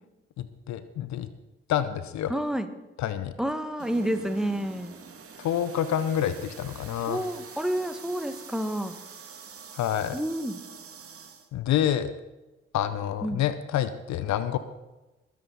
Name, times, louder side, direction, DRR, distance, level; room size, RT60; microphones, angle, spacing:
voice 1, 0.4-1.3 1.7-2.3 3.0-3.3 5.4-7.2 9.7-10.2 11.5-12.1 12.7-14.6, left 10 dB, 65° left, 13 dB, 0.9 m, -28 dB
voice 2, 2.3-2.7 3.4-4.9 7.1-9.0 10.1-10.6 13.2-13.4, right 1 dB, ahead, 8 dB, 1.7 m, -29 dB
sound 1, 3.8-11.5, right 6 dB, 45° right, 2.0 m, -45 dB
21.5 x 9.8 x 4.1 m, 1.1 s
hypercardioid pair, 40°, 31 cm